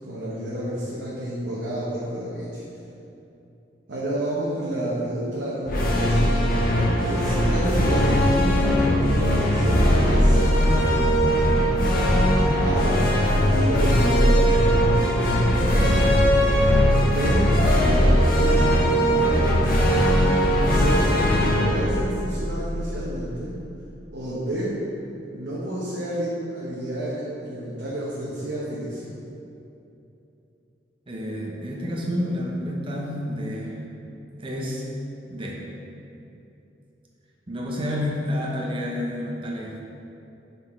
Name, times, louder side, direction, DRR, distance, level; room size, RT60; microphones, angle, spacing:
voice 1, 0.0-2.6 3.9-6.2 7.1-10.6 12.6-16.2 17.0-19.7 20.7-23.5 24.1-24.8 25.3-29.1, right 1 dB, 70° right, -8 dB, 1.0 m, -30 dB
sound 1, 5.6-23.1, equal, 55° left, 1.0 m, -19 dB
voice 2, 31.1-33.8 34.4-34.8 35.3-35.6 37.5-39.7, left 1 dB, 30° right, -3 dB, 0.8 m, -29 dB
5.9 x 4.1 x 4.4 m, 2.8 s
head